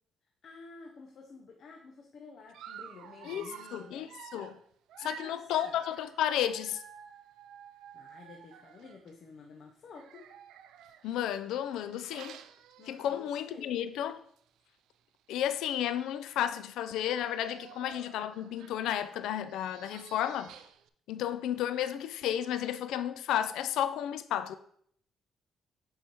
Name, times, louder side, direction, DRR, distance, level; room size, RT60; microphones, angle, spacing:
voice 1, 0.4-4.1 5.0-5.8 7.9-10.2 12.8-13.7, left 4 dB, 60° left, 0.7 m, -51 dB
Dog, 2.5-9.1 9.9-13.5 13.9-14.1 14.4-14.5 15.3-15.4 15.6-16.2 16.8-20.9, right 9 dB, 85° right, 0.3 m, -51 dB
voice 2, 3.2-4.6 5.0-6.8 11.0-12.4 12.9-14.2 15.3-20.5 21.1-24.5, left 10 dB, 85° left, 0.4 m, -32 dB
7.5 x 4.9 x 2.9 m
cardioid pair, 90°, 0 cm